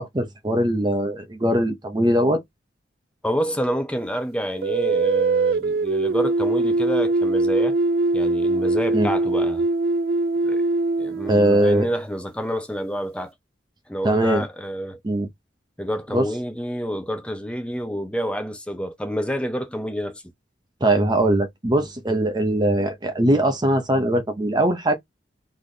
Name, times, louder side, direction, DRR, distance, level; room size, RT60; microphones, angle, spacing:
voice 1, 0.0-2.4 8.9-9.1 11.3-11.9 14.0-14.4 15.0-15.3 16.1-16.2 20.8-24.9, right 1 dB, 25° right, 0.7 m, -21 dB
voice 2, 3.2-7.8 8.1-9.7 10.4-10.6 11.0-13.3 13.9-15.0 15.8-20.2, equal, 5° left, 0.8 m, -28 dB
sound 1, 4.6-12.0, right 3 dB, 55° right, 0.3 m, -22 dB
4.0 x 3.4 x 3.9 m
head